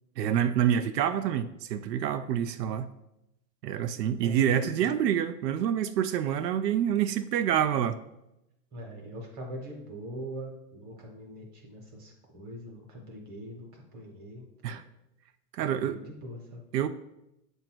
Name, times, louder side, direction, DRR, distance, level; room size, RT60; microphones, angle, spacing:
voice 1, 0.2-2.9 3.6-8.0 14.6-14.8 15.5-16.0 16.7-16.9, right 9 dB, 80° right, 0.6 m, -27 dB
voice 2, 3.7-4.9 8.7-14.8 15.6-16.6, right 1 dB, 20° right, 1.1 m, -43 dB
7.8 x 2.7 x 6.0 m
supercardioid pair, 170°, 49 cm